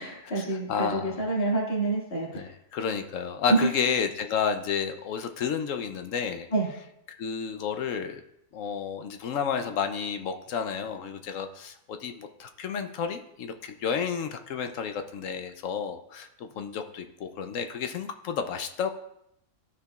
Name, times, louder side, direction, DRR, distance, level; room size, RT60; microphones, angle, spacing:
voice 1, 0.0-2.5 3.5-3.7 6.5-6.7, right 2 dB, 45° left, -4 dB, 2.2 m, -27 dB
voice 2, 0.7-1.2 2.3-6.5 7.1-8.2 8.5-18.9, left 6 dB, 70° left, 7 dB, 1.0 m, -31 dB
14.5 x 4.8 x 2.3 m, 0.78 s
omnidirectional pair, 1.4 m